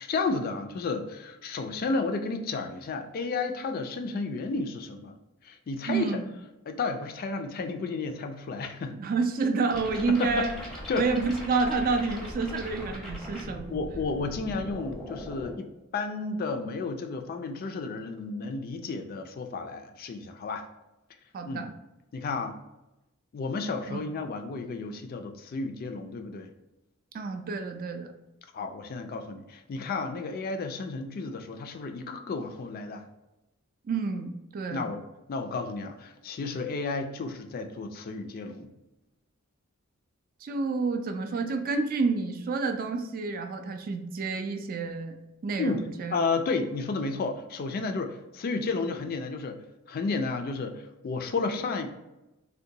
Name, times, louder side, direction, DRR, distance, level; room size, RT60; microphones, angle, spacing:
voice 1, 0.0-5.2 5.4-6.2 6.7-9.0 10.1-10.5 10.9-11.1 13.7-20.6 21.5-21.7 22.1-22.6 23.3-26.5 28.5-33.0 34.7-35.0 35.3-38.7 45.6-45.8 46.1-51.9, left 4 dB, 45° left, 7 dB, 0.3 m, -32 dB
voice 2, 5.9-6.2 9.0-10.5 11.0-13.8 21.3-21.7 23.9-24.1 27.1-28.1 33.9-34.9 40.4-45.2 45.4-46.2, right 4 dB, 45° right, 5 dB, 0.3 m, -29 dB
sound 1, 9.7-15.5, equal, ahead, 0.6 m, -40 dB
3.7 x 2.2 x 2.7 m, 0.96 s
head